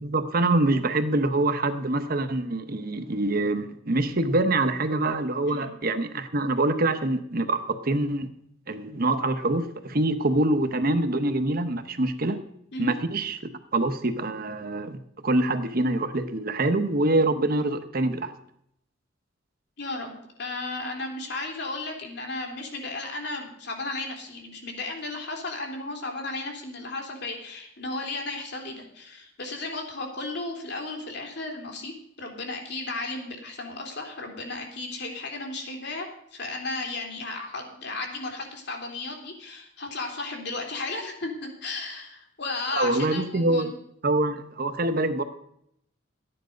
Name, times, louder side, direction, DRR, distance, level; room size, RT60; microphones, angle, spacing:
voice 1, 0.0-8.3 8.7-12.4 12.8-13.4 13.7-18.3 42.7-43.7 44.0-45.2, right 2 dB, 50° right, 9 dB, 1.0 m, -25 dB
voice 2, 19.8-43.8, left 2 dB, 60° left, 2 dB, 3.1 m, -34 dB
14.0 x 10.0 x 5.2 m, 0.73 s
head